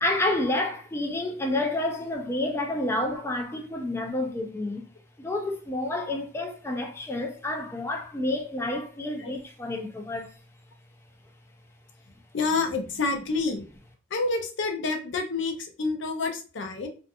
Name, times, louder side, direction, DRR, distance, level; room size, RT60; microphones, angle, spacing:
voice 1, 0.0-4.9 5.2-10.4, left 1 dB, 15° left, 0.3 m, -29 dB
voice 2, 12.3-13.6 14.1-16.9, left 3 dB, 75° left, 0.5 m, -28 dB
2.5 x 2.3 x 2.5 m
head